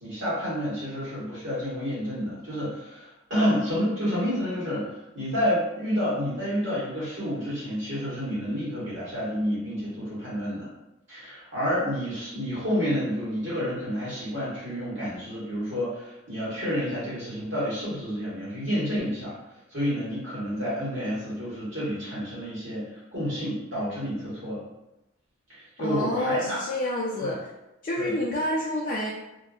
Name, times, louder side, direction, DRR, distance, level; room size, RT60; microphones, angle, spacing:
voice 1, 0.0-10.7 11.1-19.3 19.7-24.6 25.5-26.6 27.2-27.3 27.9-28.1, equal, 65° right, -9 dB, 1.3 m, -29 dB
voice 2, 25.8-27.5 27.8-29.1, left 1 dB, 45° left, -5 dB, 0.3 m, -28 dB
2.6 x 2.4 x 2.4 m, 0.92 s
head